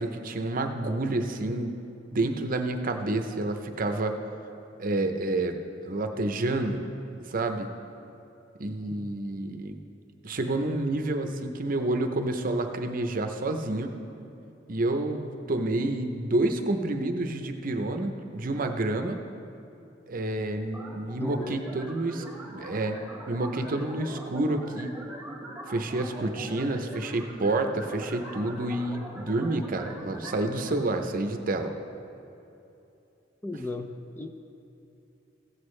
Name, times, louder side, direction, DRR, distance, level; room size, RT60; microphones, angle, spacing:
voice 1, 0.0-1.7 2.1-4.2 4.8-6.8 7.3-7.7 8.6-9.8 10.2-14.0 14.7-19.2 20.1-23.0 23.3-25.0 25.7-31.7, right 2 dB, 50° right, 6 dB, 0.7 m, -29 dB
sound 1, 20.7-30.7, right 1 dB, 5° right, 1.4 m, -42 dB
voice 2, 21.2-21.7 33.4-33.9 34.2-34.3, left 2 dB, 10° left, 6 dB, 0.4 m, -35 dB
15.5 x 8.1 x 3.2 m, 2.9 s
head